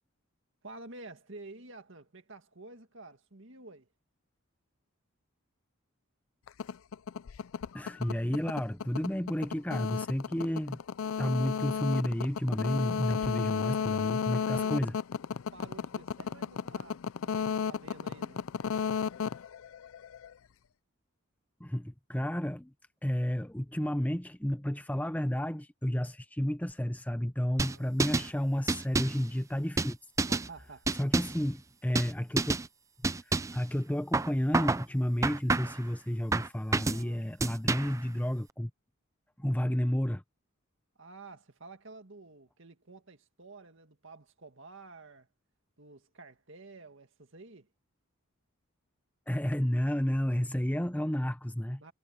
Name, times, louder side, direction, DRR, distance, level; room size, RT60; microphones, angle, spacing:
voice 1, 0.6-3.9 12.9-13.9 14.5-14.8 15.5-18.5 27.5-27.9 30.3-30.9 36.9-37.2 41.0-45.3 45.8-47.7 51.8-51.9, right 3 dB, 60° right, 2.1 m, -50 dB
sound 1, 6.5-20.3, left 6 dB, 75° left, 0.4 m, -33 dB
voice 2, 7.7-10.8 11.2-15.0 21.6-22.7 23.0-30.0 31.0-32.6 33.3-38.7 39.4-40.2 49.3-51.8, equal, 5° left, 0.7 m, -31 dB
sound 2, 27.6-28.3 28.7-29.2 29.8-30.5 30.9-31.4 32.0-32.1 32.4-32.7 33.0-33.6 34.1-34.9 35.2-35.8 36.3-37.0 37.4-38.0, right 3 dB, 15° right, 0.3 m, -29 dB
head